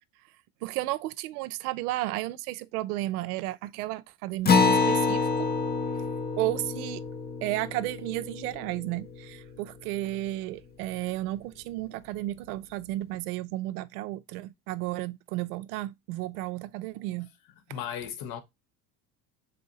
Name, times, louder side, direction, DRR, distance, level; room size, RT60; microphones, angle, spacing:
voice 1, 0.6-5.5 5.9-6.0 6.4-7.0 7.4-17.3, right 17 dB, 75° right, 0.5 m, -33 dB
Acoustic guitar, 4.5-9.3, left 4 dB, 20° left, 0.7 m, -27 dB
voice 2, 17.7-18.4, left 9 dB, 50° left, 0.9 m, -35 dB
4.1 x 2.6 x 3.9 m
hypercardioid pair, 75°, 46 cm